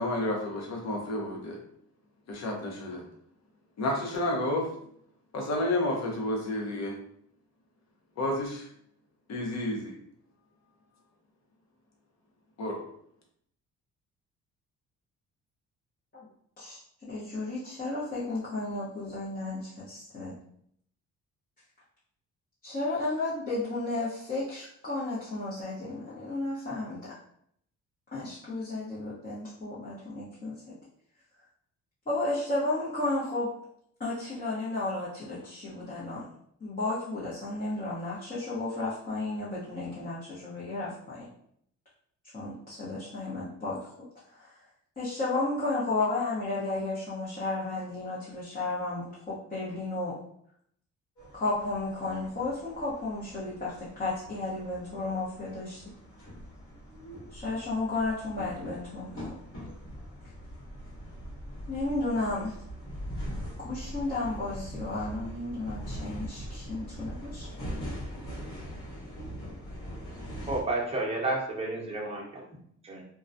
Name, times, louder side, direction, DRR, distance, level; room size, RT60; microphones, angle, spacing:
voice 1, 0.0-1.6 2.3-3.0 3.8-4.7 5.3-7.0 8.2-8.7 9.3-9.9 12.6-12.8, left 1 dB, 60° left, 0 dB, 0.8 m, -30 dB
voice 2, 16.6-20.3 22.6-27.1 28.1-30.6 32.1-33.5 34.0-36.3 36.6-41.3 42.3-43.9 44.3-44.6 45.0-50.1 51.3-55.8 57.3-59.3 61.7-62.5 63.6-67.5, left 2 dB, 30° left, -9 dB, 0.8 m, -33 dB
sound 1, 51.2-70.6, equal, 45° left, 1.2 m, -42 dB
voice 3, 70.5-72.4 72.8-73.0, right 2 dB, 20° right, -2 dB, 0.7 m, -31 dB
2.3 x 2.1 x 2.5 m, 0.67 s
cardioid pair, 90°, 30 cm